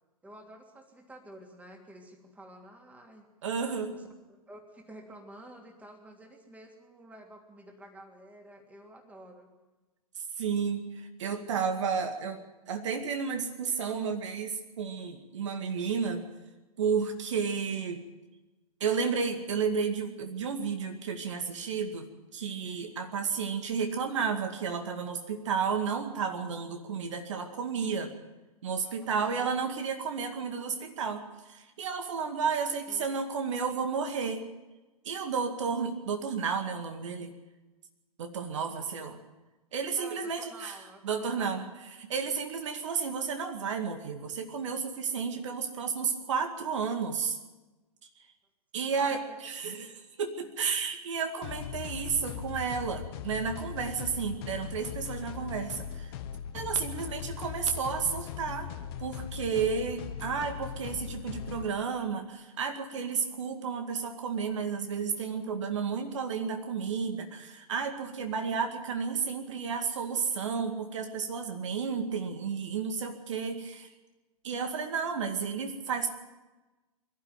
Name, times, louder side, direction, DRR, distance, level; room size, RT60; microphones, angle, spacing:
voice 1, 0.2-3.3 3.9-4.1 4.5-9.5 28.8-29.1 32.6-33.1 40.0-41.8 48.9-49.4 56.7-57.2, right 1 dB, 10° right, 2 dB, 3.0 m, -50 dB
voice 2, 3.4-4.0 10.4-12.4 12.7-16.3 16.8-18.0 18.8-28.1 28.6-34.5 35.0-37.3 38.2-39.2 39.7-40.8 41.0-41.7 42.1-47.4 48.7-56.1 56.5-58.7 59.0-73.9 74.4-76.1, right 6 dB, 55° right, 6 dB, 2.1 m, -32 dB
sound 1, 51.4-61.7, left 9 dB, 40° left, 1.4 m, -39 dB
23.5 x 12.5 x 9.2 m, 1.1 s
figure-of-eight pair, 115°, 19 cm